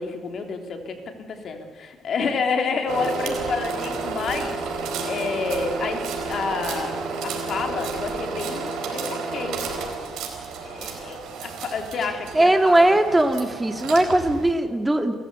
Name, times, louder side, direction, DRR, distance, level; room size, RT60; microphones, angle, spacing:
voice 1, 0.0-9.6 10.6-13.0, left 4 dB, 60° left, 4 dB, 3.3 m, -29 dB
sound 1, 2.9-14.5, right 4 dB, 90° right, 4.3 m, -31 dB
voice 2, 12.3-15.1, right 1 dB, 15° right, 6 dB, 2.2 m, -19 dB
29.0 x 14.0 x 8.3 m, 1.5 s
cardioid pair, 90°, 0 cm